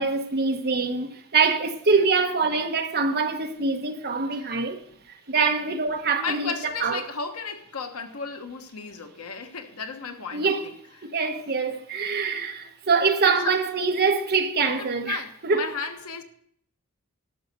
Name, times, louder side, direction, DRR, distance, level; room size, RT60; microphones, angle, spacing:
voice 1, 0.0-4.8 5.3-6.5 6.8-7.0 10.3-10.7 11.0-15.7, right 4 dB, 45° right, 1.2 m, -24 dB
voice 2, 6.2-10.7 13.2-13.6 14.8-16.2, left 5 dB, 85° left, 1.3 m, -34 dB
12.0 x 6.3 x 6.9 m
head